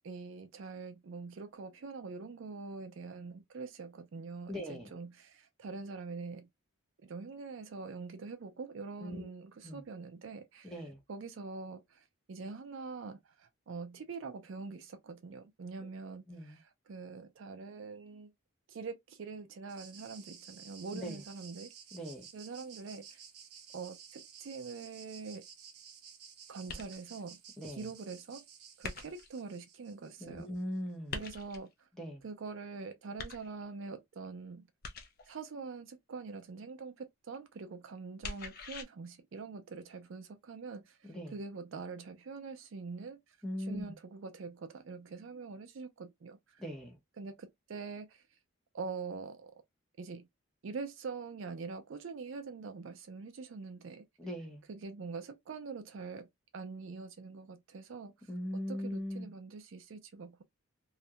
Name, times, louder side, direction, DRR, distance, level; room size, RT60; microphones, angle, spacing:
voice 1, 0.0-6.5 7.0-10.7 11.1-18.3 18.7-21.7 22.3-23.2 23.7-25.4 26.5-27.4 27.7-28.4 28.8-30.5 31.1-31.7 32.2-34.7 35.3-43.4 43.7-46.6 47.2-48.2 48.7-49.6 50.0-50.3 50.6-54.0 54.7-56.3 56.5-58.1 58.5-60.4, right 4 dB, 60° right, 0.4 m, -44 dB
voice 2, 4.5-4.9 9.0-9.3 9.6-9.8 10.6-11.0 15.8-15.9 16.3-16.6 20.9-21.2 21.9-22.2 27.6-27.9 30.2-31.2 32.0-32.2 41.1-41.4 43.4-43.9 46.6-47.0 54.2-54.6 58.3-59.3, equal, ahead, 0.7 m, -40 dB
sound 1, 19.7-30.6, right 7 dB, 90° right, 0.7 m, -54 dB
sound 2, 26.7-27.2 28.8-29.4 31.1-31.7 33.2-33.8 34.8-35.4 38.2-38.8, left 4 dB, 45° left, 0.4 m, -43 dB
2.3 x 2.1 x 2.7 m
head